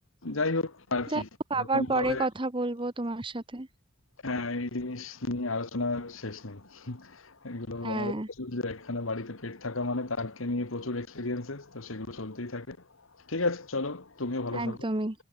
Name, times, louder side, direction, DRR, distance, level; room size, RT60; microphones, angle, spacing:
voice 1, 0.2-1.3 1.6-2.3 4.2-12.8 13.3-14.8, left 2 dB, 75° left, 1.8 m, -33 dB
voice 2, 1.5-3.7 7.8-8.3 14.5-15.1, right 2 dB, 25° right, 1.2 m, -30 dB
head